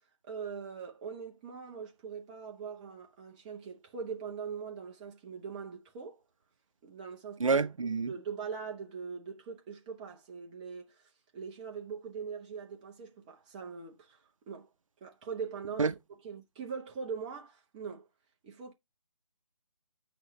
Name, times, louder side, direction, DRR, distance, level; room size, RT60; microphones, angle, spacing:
voice 1, 0.2-6.2 6.8-11.0 11.3-14.2 14.5-14.7 15.0-15.9 16.2-18.1 18.4-18.7, right 6 dB, 15° right, 0.8 m, -42 dB
voice 2, 7.4-8.1 15.8-15.9, right 4 dB, 65° right, 0.7 m, -28 dB
8.9 x 6.2 x 3.1 m
figure-of-eight pair, 155°, 18 cm